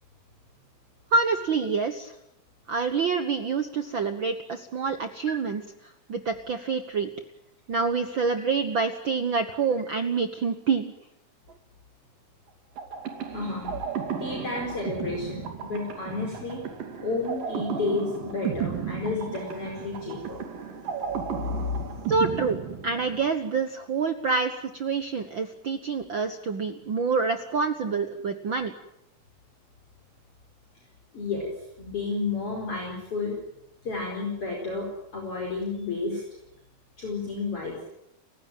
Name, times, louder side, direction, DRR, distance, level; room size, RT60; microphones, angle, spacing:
voice 1, 1.1-2.1 2.7-5.6 6.1-7.1 7.7-10.9 22.1-22.6 22.8-28.7, right 5 dB, 85° right, 8 dB, 1.0 m, -27 dB
sound 1, 12.8-23.4, right 7 dB, 70° right, 4.2 m, -34 dB
voice 2, 13.3-13.8 14.2-16.6 17.0-20.4 21.5-22.1 31.1-31.5 31.8-33.4 33.8-36.2 37.0-37.9, left 3 dB, 40° left, 0 dB, 5.5 m, -31 dB
30.0 x 16.0 x 9.1 m, 0.81 s
omnidirectional pair, 4.1 m